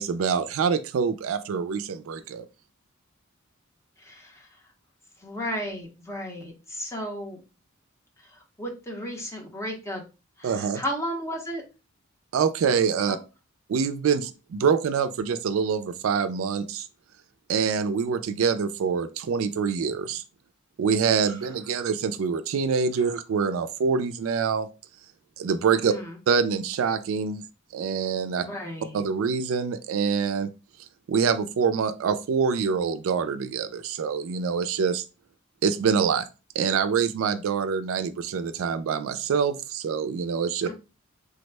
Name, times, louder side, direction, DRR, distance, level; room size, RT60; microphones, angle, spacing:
voice 1, 0.0-2.5 10.4-10.8 12.3-13.2 13.7-16.9 17.5-20.2 20.8-24.7 25.4-25.9 26.3-27.4 27.7-28.4 28.9-30.5 31.1-35.0 35.6-36.3 36.6-40.7, right 6 dB, 75° right, 0.3 m, -25 dB
voice 2, 4.0-4.5 5.2-7.4 8.4-10.0 10.4-11.6 13.1-13.2 25.7-26.2 28.4-29.0 40.6-40.7, equal, 15° left, 0.7 m, -34 dB
3.4 x 2.1 x 3.2 m
head